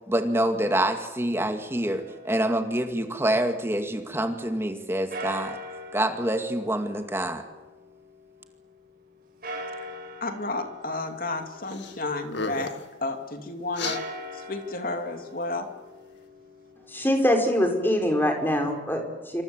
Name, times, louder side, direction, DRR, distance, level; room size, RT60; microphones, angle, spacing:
voice 1, 0.1-5.6 5.9-7.4, right 1 dB, 15° right, 6 dB, 2.2 m, -26 dB
sound 1, 1.9-4.0 5.1-8.5 9.4-12.4 13.6-17.6, equal, 50° right, 7.9 m, -42 dB
voice 2, 10.2-14.0 14.3-15.7, left 2 dB, 45° left, 5 dB, 3.1 m, -32 dB
sound 2, 11.7-11.9 12.2-12.9 13.7-14.0, left 4 dB, 70° left, 2.3 m, -33 dB
voice 3, 16.9-19.4, left 1 dB, 10° left, 3 dB, 5.2 m, -24 dB
27.5 x 26.0 x 8.2 m, 1.1 s
head